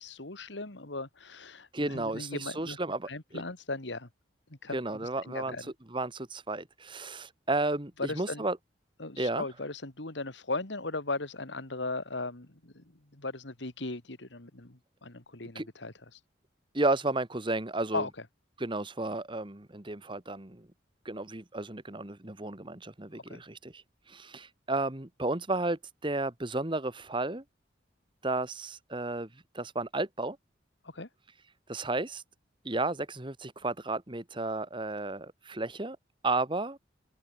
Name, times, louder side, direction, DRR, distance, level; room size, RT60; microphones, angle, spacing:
voice 1, 0.0-2.8 3.1-4.1 4.5-5.7 8.0-8.4 9.0-16.2 17.9-18.3 23.1-23.4 30.8-31.1, left 2 dB, 75° left, 2.6 m, -38 dB
voice 2, 1.7-3.4 4.7-5.6 5.9-8.6 9.2-9.4 15.5-15.7 16.7-18.1 18.6-20.7 21.0-23.8 24.1-27.4 28.2-29.3 29.5-30.4 31.7-32.2 32.6-36.0 36.2-36.8, right 2 dB, 25° right, 1.6 m, -33 dB
open air
head